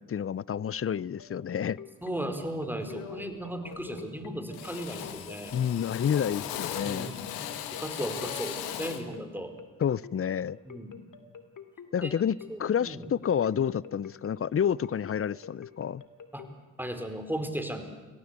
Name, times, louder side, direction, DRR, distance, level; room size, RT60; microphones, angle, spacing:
voice 1, 0.0-1.8 5.5-7.1 9.8-10.6 11.9-16.0, left 8 dB, 40° left, 23 dB, 0.6 m, -29 dB
sound 1, 1.2-16.5, left 7 dB, 60° left, 2.4 m, -47 dB
voice 2, 2.0-5.5 6.5-9.5 10.6-11.0 12.0-12.2 12.5-13.1 16.3-16.5 16.8-17.8, right 1 dB, 5° right, 7 dB, 4.4 m, -36 dB
Drill, 2.2-2.4 2.9-3.4 3.6-4.2 4.5-9.1, left 10 dB, 90° left, 1.5 m, -38 dB
24.0 x 17.0 x 8.2 m, 1.3 s
supercardioid pair, 45°, 36 cm